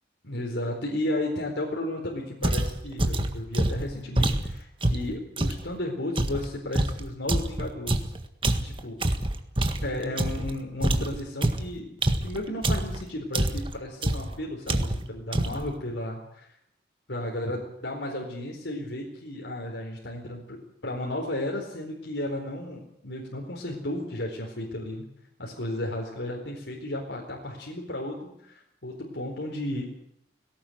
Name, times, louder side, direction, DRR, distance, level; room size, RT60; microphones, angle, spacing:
voice 1, 0.2-8.1 8.6-9.0 9.8-11.9 12.2-16.5 17.1-20.6 20.8-25.1 25.4-29.9, left 1 dB, 75° left, 0 dB, 4.3 m, -33 dB
sound 1, 2.4-5.7 6.2-10.5 10.8-13.0 13.3-13.8 14.0-14.4 14.7-15.1 15.3-15.7, right 1 dB, 30° right, 1.7 m, -26 dB
19.0 x 17.5 x 9.3 m, 0.74 s
head